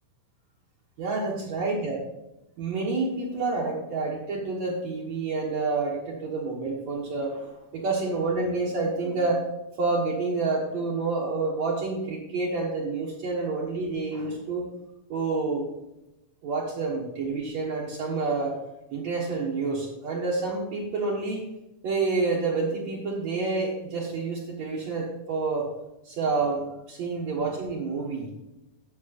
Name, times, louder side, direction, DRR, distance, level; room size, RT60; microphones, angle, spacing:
voice 1, 1.0-2.0 2.6-9.4 9.8-14.6 15.1-15.6 16.4-18.5 18.9-21.4 21.8-25.7 26.0-28.3, right 3 dB, 70° right, -5 dB, 1.6 m, -28 dB
10.5 x 7.5 x 4.3 m, 0.94 s
omnidirectional pair, 5.4 m